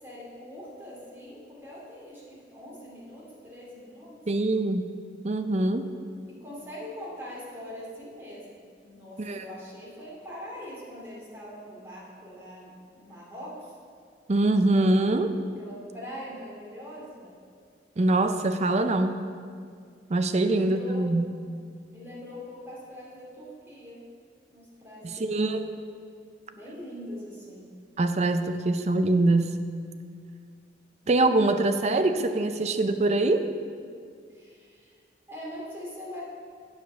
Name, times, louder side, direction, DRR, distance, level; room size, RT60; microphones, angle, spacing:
voice 1, 0.0-4.1 6.3-8.4 8.8-13.7 15.6-17.3 20.4-21.1 21.9-24.0 24.5-25.8 26.5-27.7 34.3-35.0 35.3-36.3, left 1 dB, 15° right, -6 dB, 2.3 m, -42 dB
voice 2, 4.3-4.9 5.2-5.9 9.2-9.4 14.3-15.4 18.0-19.2 20.1-21.2 25.0-25.6 28.0-29.6 31.1-33.5, right 2 dB, 40° right, 8 dB, 0.5 m, -24 dB
9.1 x 5.1 x 6.6 m, 2.2 s
head